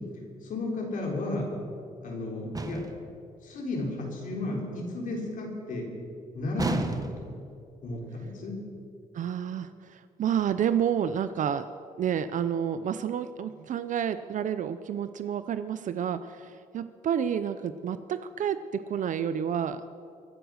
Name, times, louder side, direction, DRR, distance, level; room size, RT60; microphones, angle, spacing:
voice 1, 0.4-1.5 2.0-2.8 3.4-5.9 6.3-7.4 7.8-8.6, left 2 dB, 65° left, -1 dB, 3.9 m, -33 dB
sound 1, 2.6-3.1 6.6-7.4, right 3 dB, 25° right, 1.1 m, -32 dB
voice 2, 9.1-11.7 12.0-19.8, right 8 dB, 60° right, 12 dB, 0.6 m, -30 dB
24.0 x 8.1 x 6.4 m, 2.5 s
cardioid pair, 105°, 15 cm